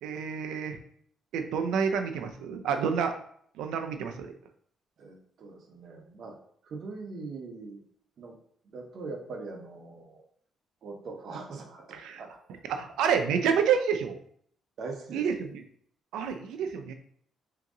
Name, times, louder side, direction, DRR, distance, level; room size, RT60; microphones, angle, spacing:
voice 1, 0.0-0.8 1.3-3.1 3.6-4.3 11.9-12.2 12.7-14.2 15.1-15.6 16.1-16.9, right 7 dB, 90° right, 6 dB, 0.5 m, -28 dB
voice 2, 5.0-6.4 6.6-7.8 8.2-8.4 8.6-10.2 10.8-12.4 14.8-15.3, right 3 dB, 60° right, 3 dB, 0.9 m, -41 dB
3.7 x 2.9 x 3.8 m, 0.63 s
cardioid pair, 90°, 0 cm